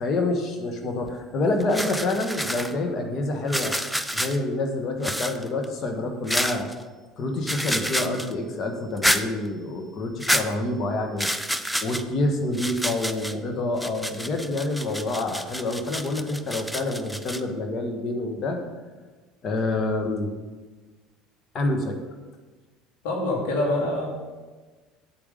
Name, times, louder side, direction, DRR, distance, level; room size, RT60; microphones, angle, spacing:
voice 1, 0.0-3.8 4.1-6.7 7.2-11.3 11.8-18.6 19.4-20.3 21.5-22.0, left 2 dB, 40° left, 4 dB, 1.5 m, -27 dB
sound 1, 1.1-1.2 1.6-2.7 3.5-4.4 5.0-5.6 6.3-6.7 7.5-8.3 9.0-9.2 10.2-10.4 11.2-12.0 12.5-13.3 13.8-17.4, equal, ahead, 0.6 m, -28 dB
voice 2, 23.0-24.1, left 1 dB, 65° left, -1 dB, 2.4 m, -25 dB
8.5 x 8.0 x 5.3 m, 1.3 s
figure-of-eight pair, 65°, 0 cm